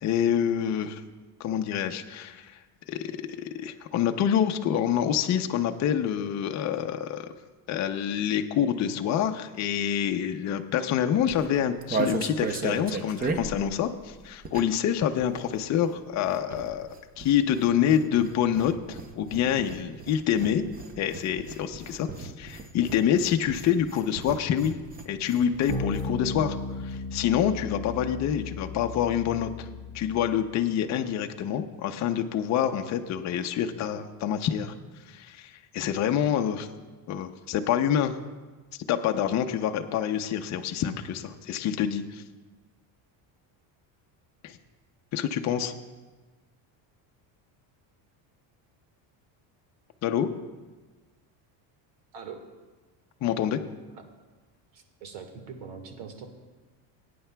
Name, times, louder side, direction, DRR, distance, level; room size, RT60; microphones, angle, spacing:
voice 1, 0.0-1.0 1.4-2.6 2.9-7.3 7.7-16.9 17.2-20.6 21.0-24.8 25.1-26.6 26.8-29.7 29.9-34.7 35.1-36.7 37.1-38.1 38.9-42.2 44.4-44.6 45.1-45.7 50.0-50.3 53.2-53.6, left 9 dB, 35° left, 6 dB, 0.6 m, -27 dB
sound 1, 11.2-14.9 15.2-26.1 26.4-26.5 26.7-27.0, right 4 dB, 20° right, 0.6 m, -36 dB
sound 2, 25.7-30.5, left 3 dB, 55° right, 3.7 m, -35 dB
voice 2, 54.7-56.3, right 6 dB, 75° right, 5 dB, 1.7 m, -42 dB
21.0 x 9.4 x 2.2 m, 1.3 s
cardioid pair, 150°, 46 cm